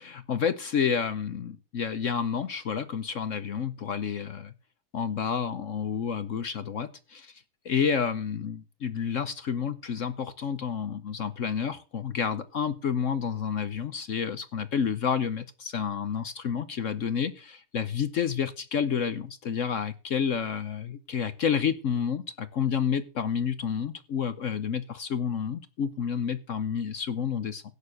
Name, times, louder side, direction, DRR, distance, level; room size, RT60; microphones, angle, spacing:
voice 1, 0.0-4.5 4.9-7.3 7.6-27.6, left 7 dB, 65° left, 0.7 m, -30 dB
16.5 x 6.8 x 6.4 m
omnidirectional pair, 2.3 m